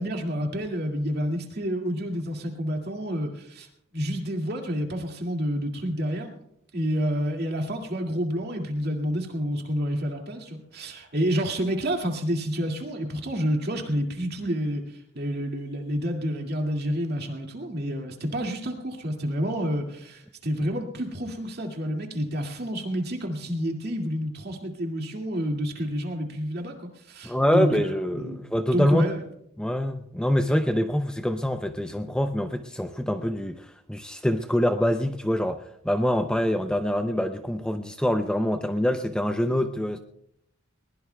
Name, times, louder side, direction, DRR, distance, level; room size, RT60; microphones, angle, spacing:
voice 1, 0.0-3.7 3.9-6.4 6.7-14.8 15.1-29.2, equal, 50° right, 2 dB, 2.2 m, -29 dB
voice 2, 27.2-29.1 29.6-40.0, equal, 5° left, 6 dB, 0.5 m, -25 dB
21.0 x 20.5 x 2.3 m, 0.76 s
head